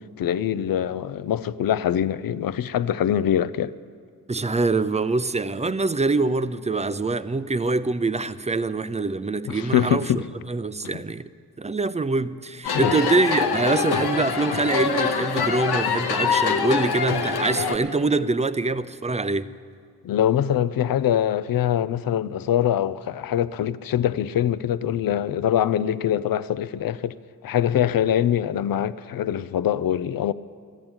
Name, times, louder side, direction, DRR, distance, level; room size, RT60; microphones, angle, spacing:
voice 1, 0.2-3.7 9.5-10.3 12.7-13.0 20.0-27.1 27.4-30.3, left 10 dB, 65° left, 0.6 m, -23 dB
voice 2, 4.3-11.3 11.6-19.5, right 3 dB, 20° right, 0.6 m, -24 dB
sound 1, 12.6-17.8, left 5 dB, 90° left, 0.9 m, -24 dB
14.0 x 9.4 x 8.8 m
supercardioid pair, 45°, 38 cm